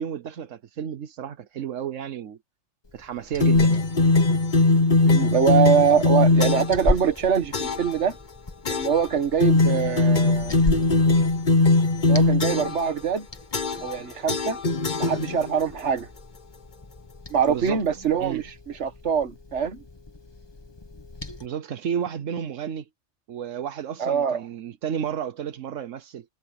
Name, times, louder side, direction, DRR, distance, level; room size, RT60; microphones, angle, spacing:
voice 1, 0.0-2.4 2.9-3.9 11.1-11.2 17.5-18.4 21.4-22.9 23.3-26.2, right 8 dB, 85° right, 1.3 m, -32 dB
Liquid, 2.8-21.5, left 2 dB, 20° left, 1.2 m, -37 dB
sound 1, 3.4-6.8 7.5-7.9 8.7-9.1 9.4-12.9 13.5-14.0 14.3-15.6, left 3 dB, 40° left, 1.2 m, -20 dB
voice 2, 5.0-8.2 8.8-10.5 12.0-13.3 13.8-14.6 15.0-16.1 17.3-18.5 18.8-19.8 24.0-24.4, right 7 dB, 65° right, 1.6 m, -23 dB
omnidirectional pair, 1.3 m